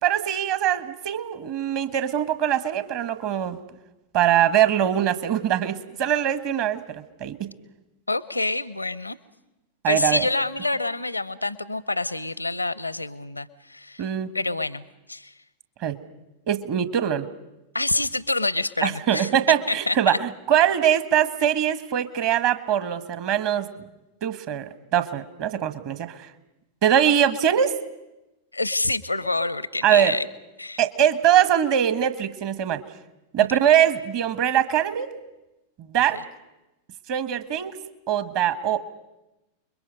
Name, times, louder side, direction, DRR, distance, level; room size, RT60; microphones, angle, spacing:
voice 1, 0.0-3.6 4.1-6.8 7.2-7.5 9.8-10.3 14.0-14.3 15.8-16.0 16.5-17.3 18.8-23.7 24.2-26.3 26.8-27.7 29.8-30.2 30.8-32.8 33.3-35.1 35.8-36.2 37.1-37.8 38.1-38.8, right 10 dB, 45° right, 12 dB, 1.4 m, -22 dB
voice 2, 8.1-9.2 9.9-14.0 14.3-15.3 17.7-19.3 19.7-20.2 28.5-30.3 30.6-30.8, left 2 dB, 85° left, 18 dB, 0.7 m, -27 dB
30.0 x 22.0 x 5.3 m, 0.97 s
figure-of-eight pair, 90°, 0 cm